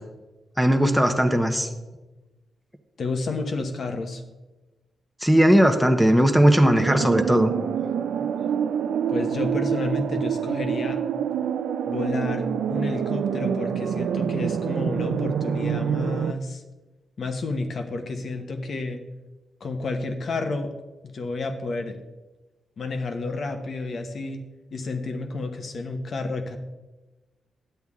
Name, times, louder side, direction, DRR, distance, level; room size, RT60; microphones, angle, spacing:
voice 1, 0.6-1.7 5.2-7.5, equal, ahead, 6 dB, 1.0 m, -18 dB
voice 2, 3.0-4.2 9.1-11.0 11.8-16.6 17.2-19.0 19.6-20.7 21.0-21.9 22.8-24.4 24.7-26.6, left 3 dB, 60° left, 6 dB, 1.2 m, -30 dB
sound 1, 6.8-16.3, right 8 dB, 85° right, 0.4 m, -26 dB
10.5 x 8.1 x 3.7 m, 1.1 s
cardioid pair, 85°, 0 cm